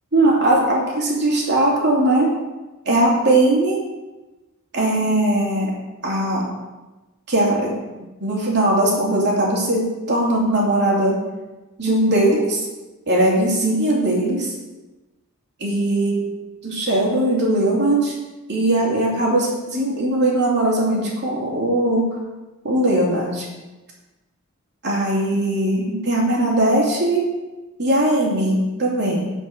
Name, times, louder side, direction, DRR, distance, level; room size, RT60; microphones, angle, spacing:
voice 1, 0.1-2.3 2.8-3.8 4.7-5.7 6.0-6.4 7.3-7.8 8.2-11.2 11.8-12.7 13.1-14.5 15.6-16.3 16.6-18.1 18.5-22.1 22.6-23.5 24.8-27.2 27.8-29.3, right 1 dB, 55° right, -3 dB, 2.9 m, -19 dB
11.0 x 5.4 x 6.5 m, 1.1 s
head